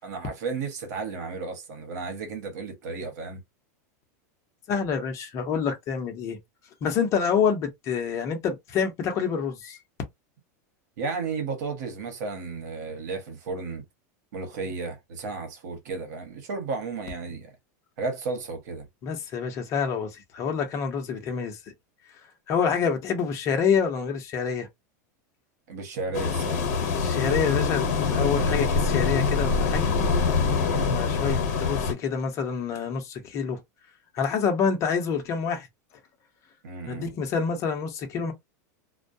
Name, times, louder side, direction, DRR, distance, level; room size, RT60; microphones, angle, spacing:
voice 1, 0.0-3.4 11.0-13.8 14.3-17.5 18.0-18.9 25.7-26.7 30.6-30.9 36.6-37.1, right 4 dB, 75° right, 1.0 m, -33 dB
voice 2, 4.7-6.4 6.8-9.8 19.0-21.6 22.5-24.7 27.0-29.9 30.9-33.6 34.1-35.7 36.9-38.3, left 6 dB, 35° left, 0.7 m, -27 dB
sound 1, 26.1-31.9, left 5 dB, 65° left, 0.9 m, -24 dB
2.2 x 2.1 x 2.6 m
supercardioid pair, 150°, 9 cm